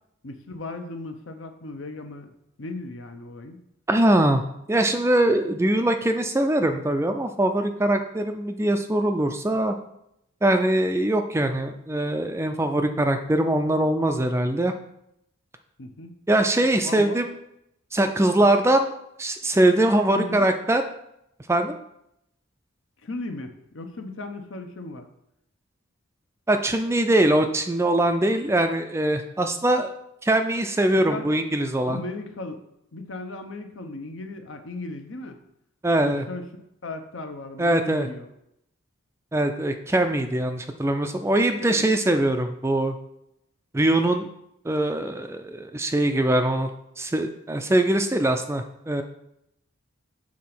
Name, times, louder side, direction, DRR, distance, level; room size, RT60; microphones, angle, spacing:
voice 1, 0.2-2.3 2.6-3.6 15.8-16.1 16.8-17.2 20.1-20.5 23.0-25.1 30.9-31.2 31.9-32.6 32.9-35.4 36.0-36.4 36.8-38.3 41.6-41.9, left 2 dB, 70° left, 6 dB, 0.9 m, -36 dB
voice 2, 3.9-4.4 4.7-9.7 10.4-14.7 16.3-17.3 17.9-18.9 19.2-20.8 21.5-21.8 26.5-29.9 30.2-32.0 35.8-36.3 37.6-38.1 39.3-43.0 43.7-44.3 44.6-46.7 47.0-49.0, right 1 dB, 15° right, 6 dB, 0.4 m, -22 dB
7.4 x 3.8 x 6.0 m, 0.78 s
head